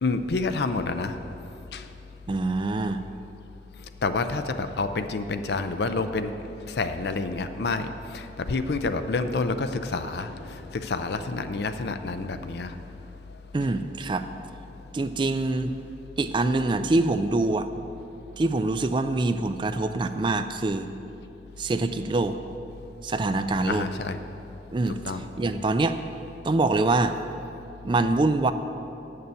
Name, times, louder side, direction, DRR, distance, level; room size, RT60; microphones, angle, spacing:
voice 1, 0.0-1.2 1.7-1.9 3.8-6.3 6.7-12.8 23.7-24.2 25.0-25.2, left 3 dB, 65° left, 9 dB, 0.5 m, -28 dB
voice 2, 2.3-3.0 13.5-14.3 14.9-15.7 16.2-17.7 18.4-20.9 21.6-22.3 23.0-23.9 24.7-25.0 25.4-26.0 26.4-27.2 27.8-28.5, right 2 dB, 25° right, 9 dB, 0.3 m, -24 dB
9.0 x 6.7 x 6.9 m, 3.0 s
head